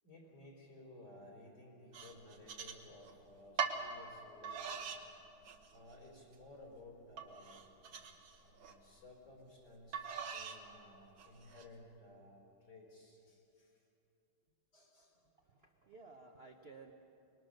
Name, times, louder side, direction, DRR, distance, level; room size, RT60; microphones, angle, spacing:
voice 1, 0.0-5.0 5.7-7.7 8.4-13.8 14.7-15.2, left 2 dB, 60° left, -1 dB, 5.0 m, -57 dB
sound 1, 1.9-3.1 3.6-3.8 4.4-5.0 5.4-6.0 6.4-6.5 7.2-8.8 9.9-10.6 11.2-11.7, right 6 dB, 70° right, 2.0 m, -42 dB
voice 2, 15.4-16.9, right 4 dB, 40° right, 2 dB, 0.9 m, -56 dB
25.0 x 21.0 x 6.5 m, 2.8 s
omnidirectional pair, 2.3 m